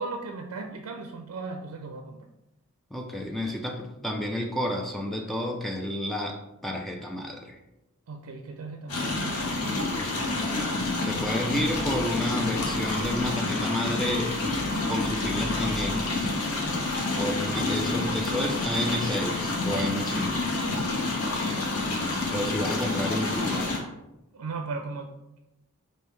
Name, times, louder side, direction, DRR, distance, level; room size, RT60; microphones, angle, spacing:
voice 1, 0.0-2.2 8.1-9.9 24.3-25.1, right 3 dB, 80° right, 3 dB, 0.4 m, -37 dB
voice 2, 2.9-7.6 11.0-14.3 14.9-16.4 17.2-20.5 22.3-23.8, left 1 dB, ahead, 1 dB, 0.3 m, -30 dB
sound 1, 8.9-23.8, left 2 dB, 85° left, 0.9 m, -28 dB
5.1 x 2.6 x 3.2 m, 0.93 s
head